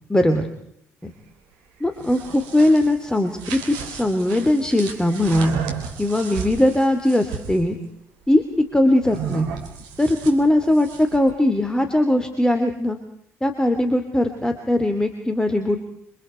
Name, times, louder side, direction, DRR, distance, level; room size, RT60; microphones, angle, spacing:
voice 1, 0.1-0.5 1.0-1.1 1.8-5.5 6.0-7.8 8.3-8.4 8.7-9.5 10.0-13.0 13.4-15.9, left 1 dB, 10° left, 6 dB, 3.2 m, -20 dB
sound 1, 1.8-7.6 9.0-11.3, right 7 dB, 70° right, 3.3 m, -34 dB
29.0 x 25.5 x 4.6 m, 0.73 s
figure-of-eight pair, 45°, 7 cm